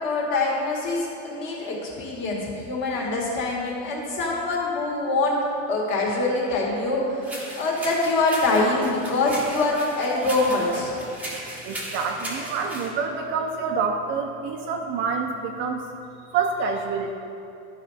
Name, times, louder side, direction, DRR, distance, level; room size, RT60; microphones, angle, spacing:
voice 1, 0.0-5.4 5.7-11.0, left 2 dB, 40° left, -3 dB, 1.8 m, -24 dB
sound 1, 7.2-12.9, right 1 dB, 5° right, 0.8 m, -37 dB
voice 2, 11.6-15.8 16.3-17.1, right 5 dB, 40° right, 3 dB, 0.5 m, -27 dB
11.5 x 5.2 x 4.1 m, 2.7 s
cardioid pair, 170°, 31 cm